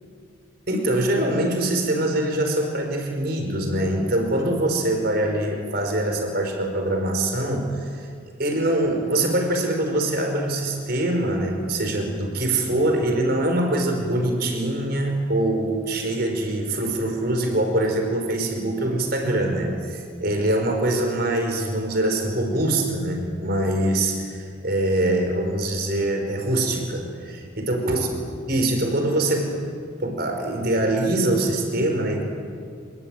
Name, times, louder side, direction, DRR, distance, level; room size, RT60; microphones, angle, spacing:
voice 1, 0.7-8.1 8.4-28.1 28.5-29.5 30.0-32.2, right 1 dB, 50° right, 3 dB, 5.3 m, -23 dB
28.0 x 22.0 x 9.2 m, 2.3 s
head